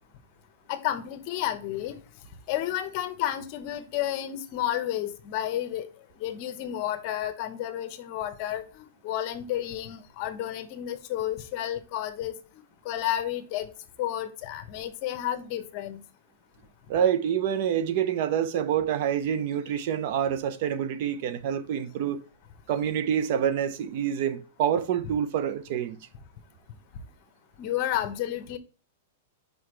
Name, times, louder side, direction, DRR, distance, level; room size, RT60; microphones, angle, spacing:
voice 1, 0.7-2.0 2.5-5.9 6.2-12.3 12.8-13.7 14.0-16.0 27.6-28.6, left 12 dB, 45° left, 1.0 m, -31 dB
voice 2, 16.9-22.2 22.7-26.1, right 9 dB, 55° right, 0.8 m, -27 dB
5.9 x 5.1 x 3.2 m
hypercardioid pair, 140°, 0 cm